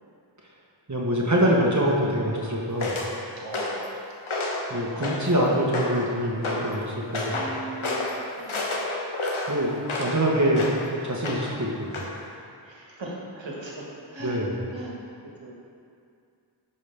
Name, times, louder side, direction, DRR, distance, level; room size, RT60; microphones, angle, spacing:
voice 1, 0.9-3.0 4.7-7.4 9.5-9.7 10.0-11.9 14.2-14.5, equal, 35° right, -3 dB, 1.2 m, -24 dB
sound 1, 2.8-3.1 3.5-3.9 4.3-4.7 5.0-5.4 5.7-6.1 6.4-6.7 7.1-7.5 7.8-8.1 8.5-10.2 10.5-10.8 11.2-11.6 11.9-12.1, left 2 dB, 85° left, 1.1 m, -29 dB
voice 2, 3.4-4.0 7.3-8.7 12.6-13.9 14.1-14.4 14.7-15.5, right 2 dB, 65° right, -4 dB, 1.8 m, -39 dB
10.5 x 5.4 x 3.5 m, 2.4 s
wide cardioid pair, 40°, 48 cm